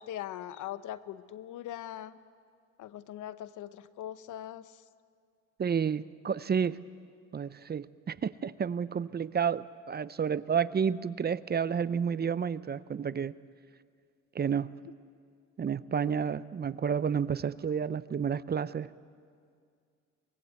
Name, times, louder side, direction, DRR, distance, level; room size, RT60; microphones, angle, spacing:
voice 1, 0.0-2.2 2.8-4.8, left 12 dB, 85° left, 15 dB, 0.9 m, -41 dB
voice 2, 5.6-6.8 7.3-13.4 14.3-14.7 15.6-18.9, right 7 dB, 35° right, 16 dB, 0.6 m, -30 dB
23.5 x 21.5 x 8.3 m, 2.1 s
cardioid pair, 90°, 30 cm